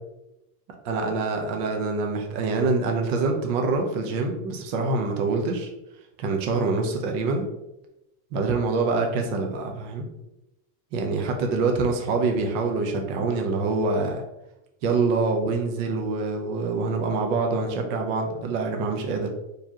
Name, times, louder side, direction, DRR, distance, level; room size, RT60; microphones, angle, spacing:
voice 1, 0.8-5.7 6.2-7.5 8.3-10.1 10.9-14.2 14.8-19.3, right 3 dB, 60° right, 2 dB, 0.9 m, -25 dB
4.7 x 3.3 x 2.9 m, 0.90 s
supercardioid pair, 155°, 41 cm